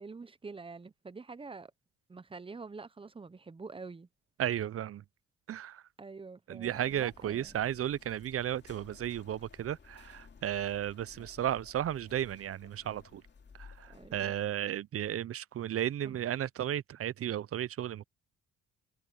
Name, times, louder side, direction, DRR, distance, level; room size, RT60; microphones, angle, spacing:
voice 1, 0.0-1.7 2.1-4.1 6.0-7.6 11.2-11.3 13.9-14.5 16.0-16.3, right 4 dB, 20° right, 0.8 m, -47 dB
voice 2, 4.4-5.0 5.5-5.8 6.5-13.2 13.6-18.0, right 11 dB, 50° right, 0.6 m, -34 dB
sound 1, 6.6-14.5, left 5 dB, 35° left, 2.5 m, -56 dB
Liquid, 7.5-14.4, left 7 dB, 55° left, 6.9 m, -70 dB
cardioid pair, 90°, 30 cm